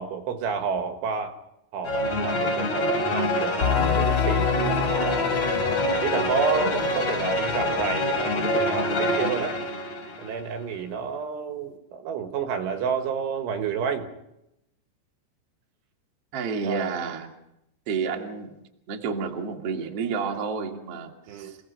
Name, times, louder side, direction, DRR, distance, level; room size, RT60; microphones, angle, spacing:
voice 1, 0.0-1.4 1.7-5.3 5.9-9.6 10.2-14.1 16.6-16.9 21.3-21.5, right 6 dB, 70° right, 6 dB, 3.8 m, -30 dB
sound 1, 1.8-10.4, left 1 dB, 40° left, 4.4 m, -26 dB
sound 2, 3.6-8.9, left 6 dB, 60° left, 1.7 m, -29 dB
voice 2, 16.3-17.3 17.9-18.6 18.9-21.6, right 5 dB, 40° right, 2 dB, 2.4 m, -30 dB
29.0 x 18.0 x 5.6 m, 0.84 s
omnidirectional pair, 5.9 m